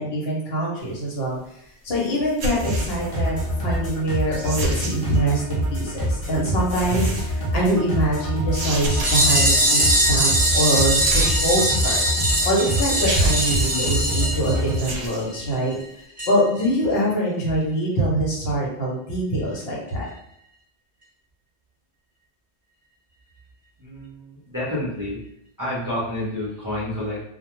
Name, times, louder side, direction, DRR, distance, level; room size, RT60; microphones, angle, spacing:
voice 1, 0.0-1.4 1.8-11.0 11.4-12.0 12.4-15.7 16.3-20.1, right 1 dB, 65° left, -4 dB, 1.0 m, -24 dB
sound 1, 2.3-3.1 4.3-5.2 6.6-7.4 8.5-9.5 11.0-11.9 12.4-12.5 13.0-13.9 14.7-15.2, right 2 dB, 60° right, 0.7 m, -29 dB
sound 2, 2.6-14.8, equal, 35° left, 0.7 m, -26 dB
sound 3, 8.9-15.1 15.3-15.4 15.7-15.8 16.2-16.3 16.6-16.7, right 1 dB, 10° right, 1.1 m, -21 dB
voice 2, 23.8-25.2 25.6-27.2, left 1 dB, 25° right, -8 dB, 0.5 m, -29 dB
2.2 x 2.1 x 2.9 m, 0.77 s
omnidirectional pair, 1.2 m